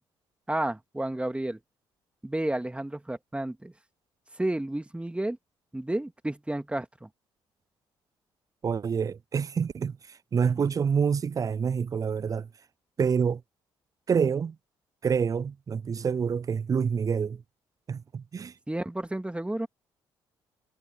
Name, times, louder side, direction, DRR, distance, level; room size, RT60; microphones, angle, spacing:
voice 1, 0.5-1.6 2.2-3.7 4.4-5.4 5.7-7.1 18.7-19.7, right 1 dB, 10° right, 2.1 m, -31 dB
voice 2, 8.6-12.5 13.0-13.4 14.1-14.6 15.0-17.4 17.9-18.5, right 6 dB, 30° right, 0.3 m, -27 dB
hypercardioid pair, 55°, 11 cm